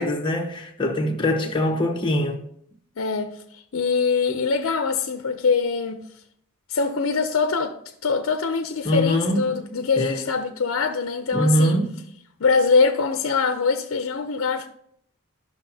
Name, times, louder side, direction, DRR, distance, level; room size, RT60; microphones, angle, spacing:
voice 1, 0.0-2.4 8.8-9.6 10.0-10.2 11.3-11.9, equal, 25° left, 1.1 m, -23 dB
voice 2, 3.0-6.0 6.7-7.7 8.0-11.8 12.4-14.7, left 5 dB, 70° left, 0.6 m, -23 dB
13.5 x 5.8 x 2.8 m
head